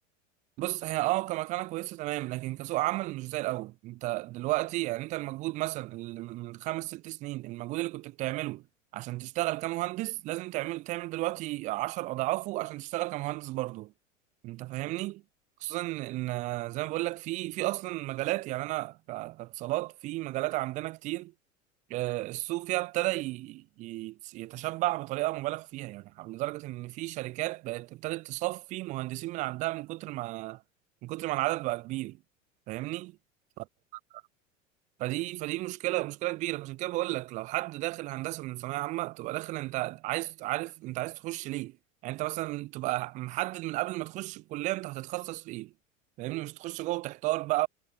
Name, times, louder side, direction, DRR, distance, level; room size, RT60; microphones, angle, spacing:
voice 1, 0.6-8.6 8.9-13.9 14.4-15.2 15.6-21.3 21.9-30.6 31.0-32.2 32.7-33.1 33.6-33.7 34.1-34.2 35.0-41.8 42.0-45.7 46.2-47.7, right 19 dB, 20° right, 0.3 m, -33 dB
figure-of-eight pair, 85°, 40 cm